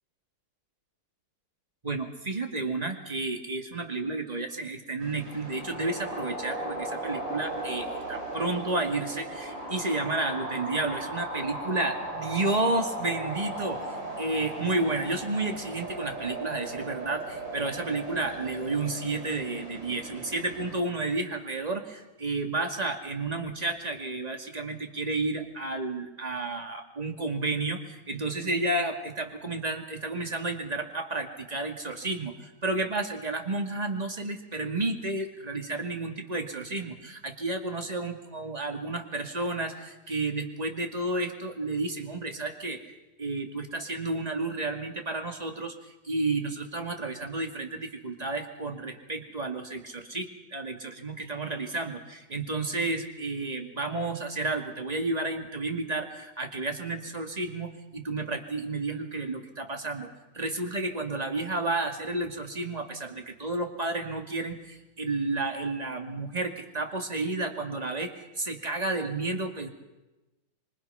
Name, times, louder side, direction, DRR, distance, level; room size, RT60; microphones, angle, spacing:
voice 1, 1.8-42.9 43.2-45.8 46.0-69.7, right 2 dB, 20° right, 4 dB, 2.2 m, -31 dB
sound 1, 5.0-20.8, right 1 dB, 60° right, 4.6 m, -37 dB
26.0 x 24.0 x 5.8 m, 1.0 s
omnidirectional pair, 2.3 m